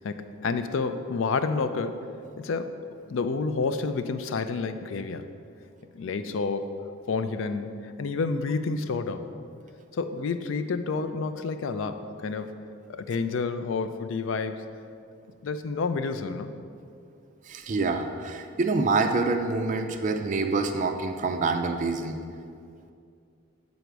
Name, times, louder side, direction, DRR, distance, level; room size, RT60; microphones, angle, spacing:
voice 1, 0.0-2.1 2.4-2.8 3.1-5.3 5.9-6.7 7.1-9.3 9.9-12.6 12.9-14.6 15.4-16.5, left 4 dB, 70° left, 10 dB, 0.4 m, -29 dB
voice 2, 17.5-22.2, right 3 dB, 35° right, 5 dB, 0.3 m, -26 dB
8.0 x 4.1 x 4.7 m, 2.4 s
head